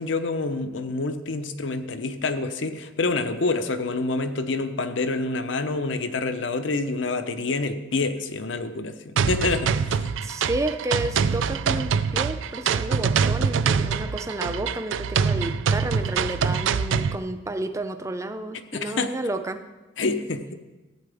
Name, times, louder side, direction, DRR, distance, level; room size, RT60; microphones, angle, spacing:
voice 1, 0.0-10.1 18.7-19.1 20.0-20.5, left 3 dB, 75° left, 9 dB, 0.8 m, -27 dB
sound 1, 9.2-17.2, right 6 dB, 85° right, 0.4 m, -24 dB
voice 2, 10.2-19.6, right 1 dB, 15° right, 9 dB, 0.6 m, -31 dB
14.5 x 8.6 x 3.5 m, 1.2 s
head